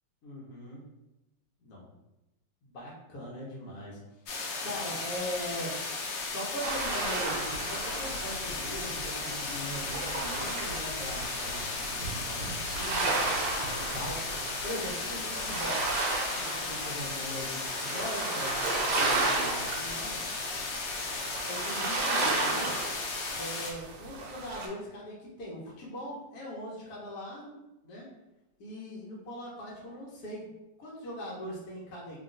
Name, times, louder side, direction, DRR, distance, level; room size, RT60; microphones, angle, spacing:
voice 1, 0.2-0.8 1.6-1.9 2.6-4.0 4.6-5.7 6.2-14.2 14.6-15.9 16.2-20.2 21.5-22.9 23.3-27.5 27.8-28.1 28.6-30.5 30.8-32.2, equal, 60° left, -5 dB, 1.2 m, -41 dB
sound 1, 4.3-23.7, left 3 dB, 80° left, 1.4 m, -35 dB
sound 2, 6.6-24.7, right 3 dB, 70° right, 1.1 m, -34 dB
3.0 x 2.8 x 2.5 m, 0.96 s
omnidirectional pair, 2.0 m